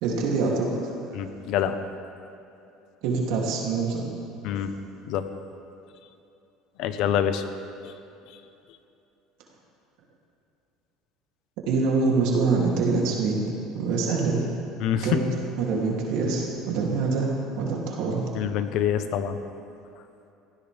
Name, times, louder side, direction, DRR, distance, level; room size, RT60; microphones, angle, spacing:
voice 1, 0.0-0.7 3.0-4.0 11.7-13.4 13.7-14.5 15.0-18.3, right 4 dB, 70° right, -2 dB, 3.0 m, -25 dB
voice 2, 1.1-1.8 4.4-4.7 5.0-5.2 6.8-7.4 14.8-15.1 18.3-19.4, left 9 dB, 60° left, 9 dB, 1.0 m, -26 dB
19.0 x 16.0 x 3.6 m, 2.7 s
cardioid pair, 135°, 0 cm